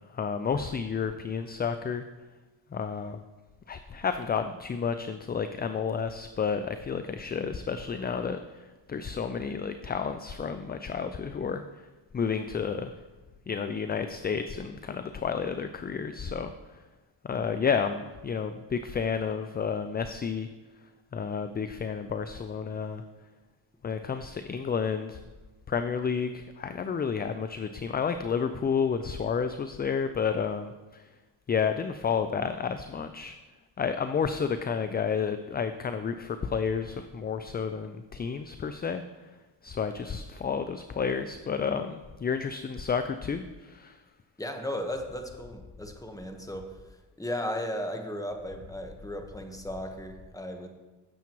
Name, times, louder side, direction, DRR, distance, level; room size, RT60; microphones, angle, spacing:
voice 1, 0.1-2.1 2.7-3.2 3.7-8.4 8.9-11.6 12.1-12.9 13.5-16.5 17.2-20.5 21.1-23.0 23.8-25.2 25.7-30.7 31.5-33.3 33.8-39.0 39.6-44.0, left 6 dB, 25° left, 9 dB, 0.3 m, -31 dB
voice 2, 44.4-46.8 47.2-50.7, left 1 dB, 10° left, 4 dB, 1.2 m, -35 dB
15.5 x 7.1 x 3.0 m, 1.2 s
cardioid pair, 95°, 45 cm